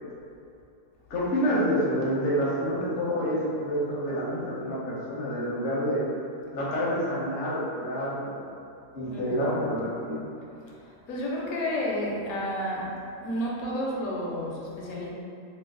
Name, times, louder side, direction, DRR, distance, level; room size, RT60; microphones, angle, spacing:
voice 1, 1.1-6.0 6.5-8.4 8.9-10.2, equal, 50° left, -6 dB, 0.6 m, -28 dB
voice 2, 11.1-12.9 13.2-15.1, equal, 70° left, -4 dB, 1.0 m, -31 dB
3.0 x 2.1 x 3.6 m, 2.6 s
omnidirectional pair, 1.6 m